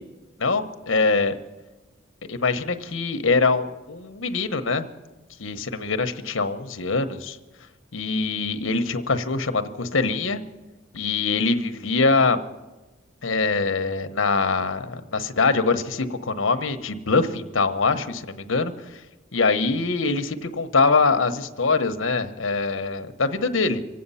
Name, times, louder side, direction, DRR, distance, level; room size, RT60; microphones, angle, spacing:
voice 1, 0.4-1.3 2.3-4.9 5.4-7.4 7.9-10.4 10.9-12.4 13.2-19.0 19.3-23.8, left 4 dB, 75° left, 9 dB, 1.0 m, -23 dB
24.5 x 8.7 x 5.6 m, 1.1 s
head